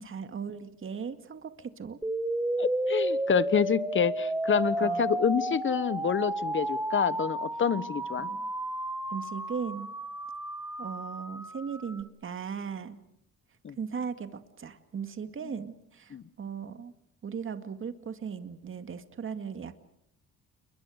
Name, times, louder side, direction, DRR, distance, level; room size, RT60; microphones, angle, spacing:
voice 1, 0.0-2.0 4.8-5.1 8.2-8.5 9.1-9.9 10.8-13.0 13.8-16.9 17.2-19.8, right 6 dB, 45° right, 8 dB, 2.2 m, -38 dB
sound 1, 2.0-12.0, right 1 dB, 5° right, 1.6 m, -32 dB
voice 2, 2.6-8.3 13.6-13.8 15.4-15.5 16.1-16.2, left 7 dB, 40° left, 16 dB, 1.2 m, -27 dB
29.0 x 22.5 x 6.5 m, 0.74 s
cardioid pair, 90°, 30 cm